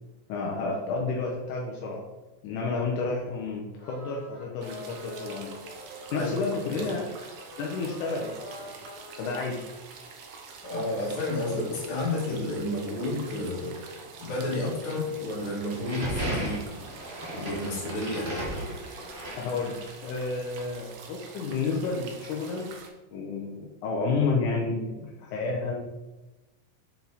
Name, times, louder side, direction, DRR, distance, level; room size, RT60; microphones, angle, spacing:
voice 1, 0.3-2.0 2.4-5.6 6.1-7.1 7.6-8.8 9.2-9.6 10.8-10.9 19.3-22.7 23.1-25.7, left 4 dB, 75° left, -2 dB, 2.2 m, -31 dB
sound 1, 3.8-9.3, equal, 15° left, 1.0 m, -44 dB
sound 2, 4.6-22.9, right 4 dB, 75° right, 1.3 m, -46 dB
voice 2, 6.1-6.8 10.6-13.8 14.2-16.6 17.3-18.3, left 2 dB, 40° left, -6 dB, 2.6 m, -31 dB
sound 3, 15.7-20.1, right 1 dB, 55° right, 0.5 m, -35 dB
7.1 x 4.6 x 4.0 m, 1.1 s
omnidirectional pair, 3.6 m